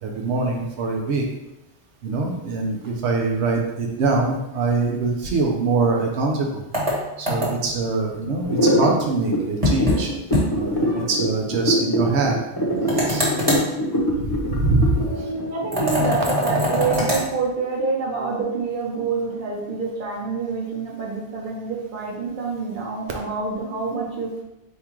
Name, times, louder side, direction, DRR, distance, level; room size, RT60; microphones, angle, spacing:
voice 1, 0.0-1.3 2.0-6.6 7.2-10.1 10.5-12.4 12.9-13.3 14.2-15.3, right 3 dB, 85° right, 0 dB, 0.9 m, -23 dB
sound 1, 6.7-7.8 9.6-10.0 10.3-10.5 10.8-10.9 12.9-13.7 15.7-17.2, equal, 35° right, 1.3 m, -22 dB
sound 2, 8.4-16.3, equal, 25° left, 0.8 m, -23 dB
voice 2, 10.8-11.1 15.0-24.4, right 4 dB, 50° right, -2 dB, 1.1 m, -27 dB
3.6 x 2.8 x 4.4 m, 0.94 s
omnidirectional pair, 1.1 m